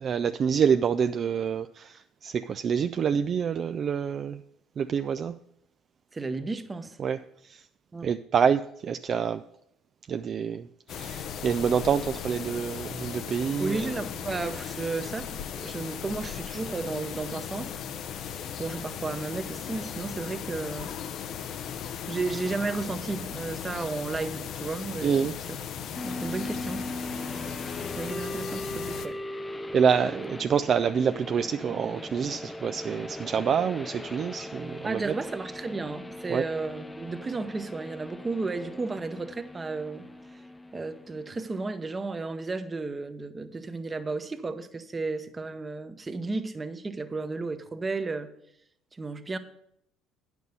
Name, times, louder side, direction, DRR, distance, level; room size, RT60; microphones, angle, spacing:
voice 1, 0.0-4.4 4.8-5.4 7.0-7.2 7.4-7.6 8.0-9.4 10.1-13.8 25.0-25.3 29.7-35.1 36.3-36.4, right 7 dB, 50° right, 0.3 m, -27 dB
voice 2, 6.1-7.0 7.9-8.1 13.6-17.8 18.6-21.0 22.1-25.3 26.0-26.9 27.9-29.3 34.8-40.1 40.3-40.4 40.7-48.3 48.9-49.4, right 3 dB, 25° right, 0.9 m, -33 dB
sound 1, 10.9-29.1, left 8 dB, 60° left, 0.6 m, -37 dB
sound 2, 26.0-41.7, left 1 dB, 15° left, 0.5 m, -39 dB
9.4 x 6.1 x 5.4 m
hypercardioid pair, 65°, 0 cm